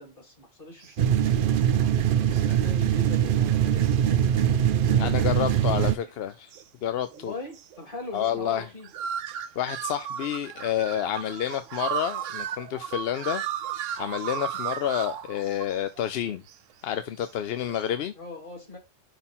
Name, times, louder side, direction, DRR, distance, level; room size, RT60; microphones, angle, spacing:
voice 1, 0.0-1.9 2.3-4.6 4.9-6.1 7.1-8.9 18.1-18.8, left 2 dB, 45° left, 2.7 m, -42 dB
sound 1, 0.8-0.9 2.3-2.4 3.6-4.1 4.5-5.8 6.0-6.9 7.1-7.2 7.5-7.8 8.0-16.0 16.3-16.7 17.0-17.4 17.7-17.8, right 10 dB, 85° right, 1.0 m, -35 dB
sound 2, 1.0-6.0, right 9 dB, 60° right, 0.6 m, -22 dB
voice 2, 5.0-6.5 6.8-7.3 8.1-8.7 9.6-13.4 14.0-16.4 16.8-18.1, left 10 dB, 65° left, 0.7 m, -29 dB
5.7 x 4.3 x 5.5 m
omnidirectional pair, 1.3 m